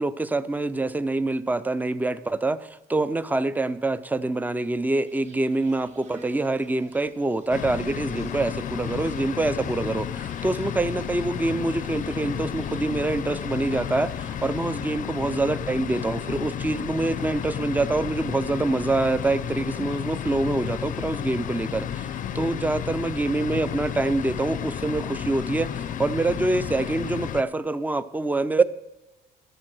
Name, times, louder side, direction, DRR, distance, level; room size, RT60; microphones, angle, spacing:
voice 1, 0.0-28.6, right 2 dB, 10° right, 0.4 m, -26 dB
Insect, 5.1-14.9, right 3 dB, 40° right, 1.5 m, -52 dB
sound 1, 7.5-27.4, left 9 dB, 50° left, 0.5 m, -32 dB
12.0 x 7.3 x 6.2 m
cardioid pair, 110°, 17 cm